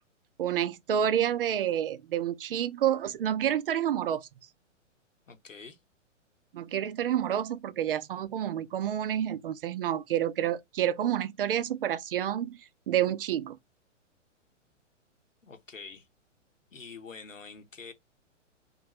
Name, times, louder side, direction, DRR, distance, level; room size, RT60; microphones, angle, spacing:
voice 1, 0.4-4.3 6.5-12.6 12.9-13.6, right 10 dB, 50° right, 0.4 m, -29 dB
voice 2, 5.3-5.8 15.4-16.1 16.7-17.9, left 5 dB, 85° left, 1.0 m, -46 dB
3.7 x 2.6 x 3.0 m
figure-of-eight pair, 115°, 37 cm